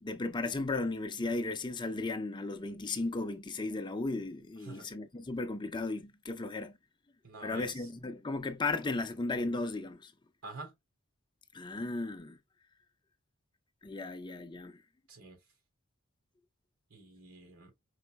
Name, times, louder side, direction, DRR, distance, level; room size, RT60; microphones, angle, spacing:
voice 1, 0.0-6.8 7.4-10.1 11.5-12.4 13.8-14.8, left 3 dB, 20° left, 0.6 m, -35 dB
voice 2, 7.2-7.9 10.4-10.7 15.1-15.4 16.9-17.7, right 3 dB, 85° right, 3.5 m, -47 dB
5.5 x 3.8 x 2.2 m
head